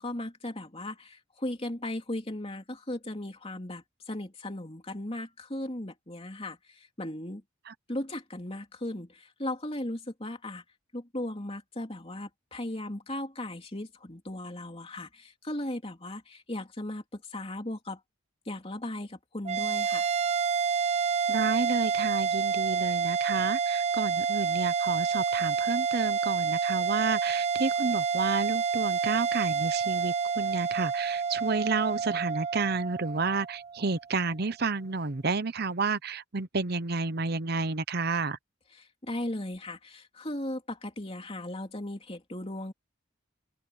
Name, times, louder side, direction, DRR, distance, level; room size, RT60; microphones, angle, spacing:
voice 1, 0.0-7.4 7.9-10.6 10.9-18.0 18.5-20.1 38.7-42.7, left 1 dB, 30° left, 3.1 m, -37 dB
sound 1, 19.4-34.0, right 6 dB, 30° right, 0.4 m, -28 dB
voice 2, 21.3-38.4, right 4 dB, 50° right, 0.9 m, -31 dB
open air
head